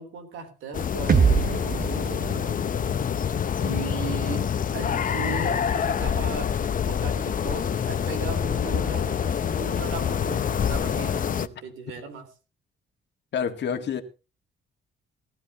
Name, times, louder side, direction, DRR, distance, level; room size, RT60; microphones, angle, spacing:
voice 1, 0.0-2.6 3.6-6.5 6.8-12.3, right 5 dB, 85° right, 3.5 m, -37 dB
sound 1, 0.7-11.5, left 8 dB, 45° left, 0.7 m, -26 dB
sound 2, 1.1-5.0, right 6 dB, 45° right, 1.2 m, -26 dB
voice 2, 13.3-14.0, left 7 dB, 60° left, 1.7 m, -27 dB
18.5 x 12.5 x 2.9 m
cardioid pair, 90°, 20 cm